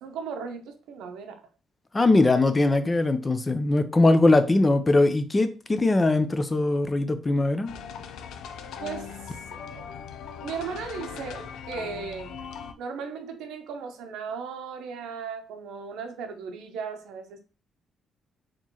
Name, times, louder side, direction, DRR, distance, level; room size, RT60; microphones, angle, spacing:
voice 1, 0.0-1.4 2.4-2.5 8.8-9.9 10.4-12.4 12.8-17.4, right 6 dB, 90° right, 0.7 m, -37 dB
voice 2, 1.9-7.7, left 2 dB, 25° left, 0.5 m, -21 dB
sound 1, 7.7-12.7, left 7 dB, 80° left, 0.4 m, -39 dB
4.3 x 3.1 x 2.9 m
cardioid pair, 90°, 0 cm